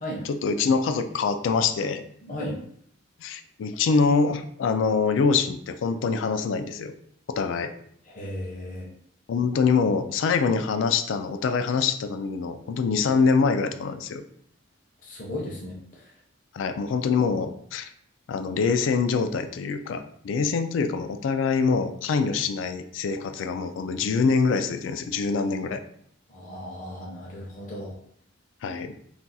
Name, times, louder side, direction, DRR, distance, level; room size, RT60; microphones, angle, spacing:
voice 1, 0.2-2.0 3.2-6.9 7.3-7.7 9.3-14.2 16.5-17.9 18.3-25.8 28.6-28.9, left 5 dB, 70° left, 9 dB, 0.3 m, -24 dB
voice 2, 2.2-2.6 8.1-8.9 15.0-16.1 26.3-28.0, left 1 dB, 45° left, -4 dB, 0.7 m, -35 dB
2.4 x 2.3 x 4.0 m, 0.65 s
head